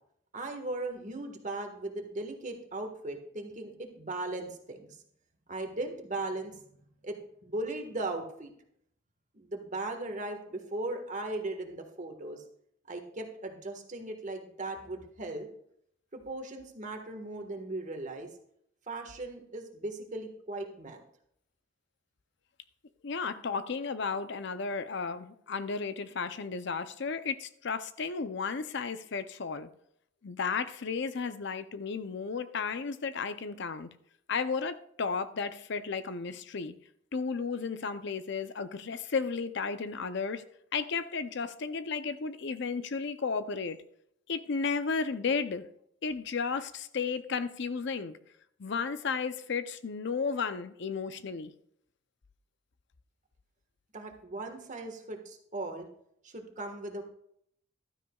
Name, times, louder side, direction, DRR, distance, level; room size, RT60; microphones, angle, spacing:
voice 1, 0.3-4.9 5.5-6.6 7.0-8.5 9.3-12.4 12.9-15.5 16.1-18.3 18.9-21.0 53.9-55.9 56.2-57.0, right 2 dB, 40° right, 1.5 m, -38 dB
voice 2, 23.0-29.7 30.2-33.9 34.3-36.7 37.1-40.4 40.7-43.8 44.3-45.7 46.0-48.2 48.6-51.5, left 5 dB, 60° left, 0.6 m, -33 dB
14.5 x 12.5 x 2.4 m
head